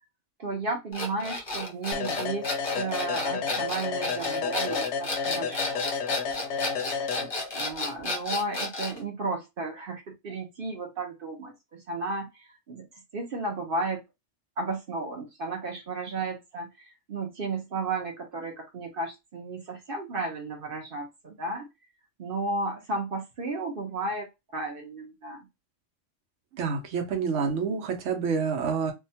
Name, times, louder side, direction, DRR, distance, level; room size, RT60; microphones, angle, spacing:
voice 1, 0.4-2.5 2.7-5.9 7.2-12.9 13.1-14.0 14.6-21.7 22.2-25.5, right 3 dB, 50° right, 0.9 m, -34 dB
sound 1, 0.9-9.0, left 2 dB, 25° left, 0.7 m, -32 dB
sound 2, 1.9-7.7, left 5 dB, 70° left, 0.8 m, -31 dB
voice 2, 26.6-28.9, right 5 dB, 75° right, 1.1 m, -28 dB
2.8 x 2.2 x 2.7 m
omnidirectional pair, 1.3 m